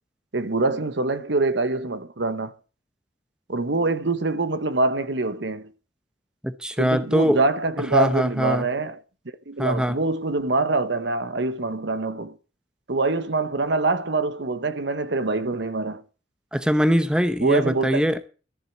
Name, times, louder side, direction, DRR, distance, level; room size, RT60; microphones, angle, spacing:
voice 1, 0.3-2.5 3.5-5.7 6.8-9.0 9.5-12.3 12.9-16.0 17.4-18.0, right 3 dB, 70° right, 1.1 m, -24 dB
voice 2, 6.4-7.4 7.9-8.7 9.6-9.9 16.5-18.3, equal, 5° right, 0.8 m, -22 dB
14.0 x 7.6 x 7.3 m
head